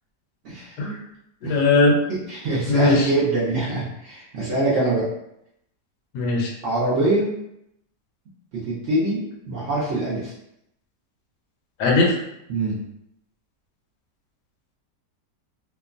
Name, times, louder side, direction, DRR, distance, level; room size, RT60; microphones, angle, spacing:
voice 1, 0.4-0.8 1.4-1.6 2.1-5.1 6.6-7.4 8.5-10.3 12.5-12.8, right 2 dB, 60° right, -7 dB, 0.8 m, -24 dB
voice 2, 1.4-2.0 2.7-3.1 6.1-6.5 11.8-12.2, left 3 dB, 80° left, 0 dB, 1.2 m, -19 dB
2.8 x 2.1 x 2.4 m, 0.79 s
omnidirectional pair, 1.8 m